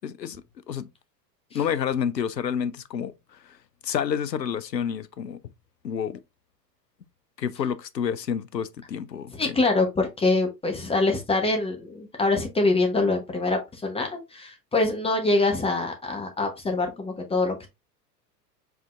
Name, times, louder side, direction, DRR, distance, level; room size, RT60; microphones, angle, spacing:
voice 1, 0.0-0.4 0.7-0.9 1.5-3.1 3.4-3.6 3.8-5.4 5.8-6.2 7.4-9.5, left 8 dB, 85° left, 0.6 m, -29 dB
voice 2, 9.3-17.7, left 2 dB, 10° left, 0.8 m, -24 dB
4.9 x 3.8 x 2.3 m
figure-of-eight pair, 85°, 49 cm